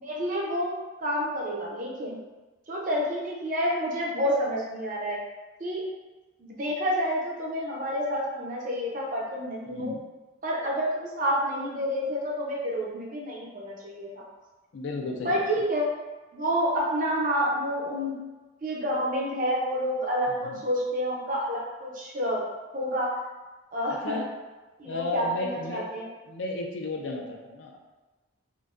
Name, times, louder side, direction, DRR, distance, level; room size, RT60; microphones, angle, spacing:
voice 1, 0.0-2.2 2.7-5.2 5.6-5.8 6.4-9.9 10.4-14.2 15.2-15.9 16.3-18.2 18.6-22.5 22.7-23.2 23.7-24.2 24.8-26.1, equal, 40° right, -3 dB, 0.6 m, -29 dB
voice 2, 9.7-10.0 14.7-15.5 20.4-20.6 23.9-24.3 24.8-25.9 26.3-27.8, left 2 dB, 65° left, 1 dB, 0.4 m, -33 dB
3.8 x 2.1 x 2.4 m, 1.2 s
head